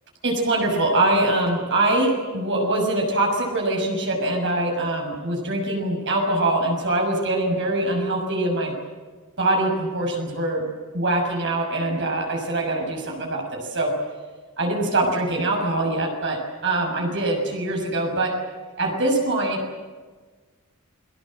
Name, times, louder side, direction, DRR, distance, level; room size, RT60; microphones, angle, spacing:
voice 1, 0.2-8.7 9.4-10.6 10.9-13.9 14.6-18.3 18.8-19.6, right 2 dB, 55° right, 0 dB, 6.4 m, -23 dB
29.0 x 21.0 x 7.7 m, 1.4 s
head